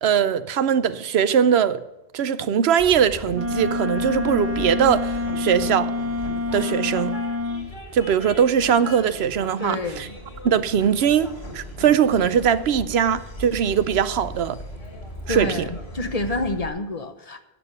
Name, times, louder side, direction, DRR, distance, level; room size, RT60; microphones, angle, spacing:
voice 1, 0.0-1.8 2.1-5.9 6.5-7.2 7.9-10.1 10.4-14.6 15.3-15.7, right 8 dB, 85° right, 0.9 m, -21 dB
Train, 2.8-16.7, equal, 85° left, 2.7 m, -38 dB
Wind instrument woodwind instrument, 3.3-7.7, left 3 dB, 15° right, 0.7 m, -27 dB
voice 2, 9.6-10.2 15.3-17.4, left 2 dB, 40° left, 0.9 m, -28 dB
11.0 x 7.1 x 8.1 m
omnidirectional pair, 1.0 m